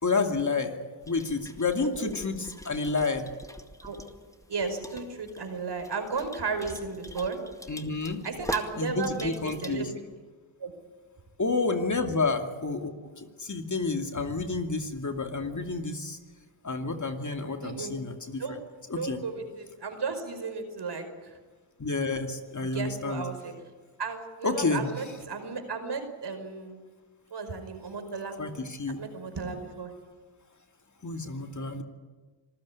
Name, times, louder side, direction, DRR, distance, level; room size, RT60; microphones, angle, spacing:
voice 1, 0.0-0.8 1.1-3.3 7.7-8.2 8.8-9.9 11.4-16.2 16.6-18.4 18.9-19.2 21.8-23.3 24.4-24.9 28.4-29.0 31.0-31.8, left 3 dB, 40° left, 5 dB, 2.6 m, -30 dB
sound 1, 1.0-9.9, left 1 dB, 5° left, 2.1 m, -44 dB
voice 2, 4.5-7.4 8.2-9.9 10.6-10.7 17.6-18.0 18.4-18.6 19.0-21.3 22.7-23.5 24.0-26.8 27.3-28.4 29.0-29.9, right 4 dB, 60° right, 7 dB, 5.1 m, -34 dB
26.0 x 15.0 x 9.8 m, 1.4 s
cardioid pair, 55°, 47 cm